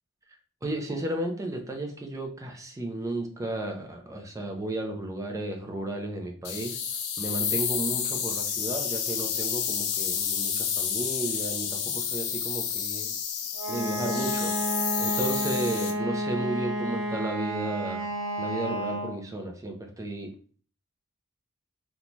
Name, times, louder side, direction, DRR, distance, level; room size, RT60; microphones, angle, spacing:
voice 1, 0.6-6.8 7.2-13.1 13.7-18.1 18.4-20.3, right 1 dB, 15° right, 3 dB, 0.4 m, -33 dB
sound 1, 6.4-15.9, left 7 dB, 90° left, 0.4 m, -30 dB
Wind instrument woodwind instrument, 13.5-19.2, right 1 dB, 50° right, 0.8 m, -31 dB
2.6 x 2.2 x 3.0 m, 0.43 s
head